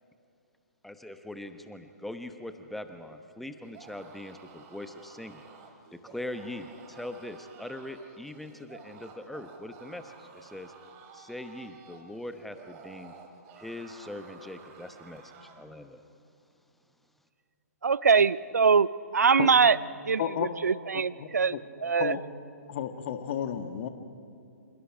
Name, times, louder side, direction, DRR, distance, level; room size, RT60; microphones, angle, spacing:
voice 1, 0.8-5.4 5.9-10.7 11.1-13.1 13.5-16.0, left 1 dB, ahead, 1.0 m, -41 dB
sound 1, 3.6-15.7, right 5 dB, 30° right, 2.6 m, -52 dB
voice 2, 17.8-18.9 19.1-19.8 20.1-20.2 20.6-21.6 21.8-22.2, right 5 dB, 70° right, 0.6 m, -22 dB
voice 3, 21.2-21.6 22.0-22.2 22.7-23.9, left 9 dB, 40° left, 1.9 m, -32 dB
28.0 x 27.5 x 5.0 m
figure-of-eight pair, 125°, 9 cm